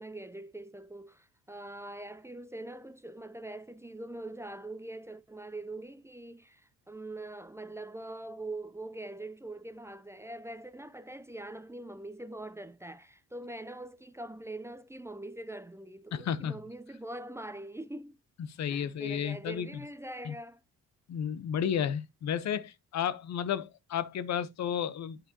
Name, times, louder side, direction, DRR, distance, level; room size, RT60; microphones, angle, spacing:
voice 1, 0.0-18.2 18.7-20.6, right 2 dB, 10° right, 0.6 m, -43 dB
voice 2, 16.1-16.6 18.5-19.7 20.2-20.3 21.1-25.2, left 8 dB, 65° left, 0.8 m, -32 dB
8.8 x 5.4 x 2.8 m
cardioid pair, 90°, 30 cm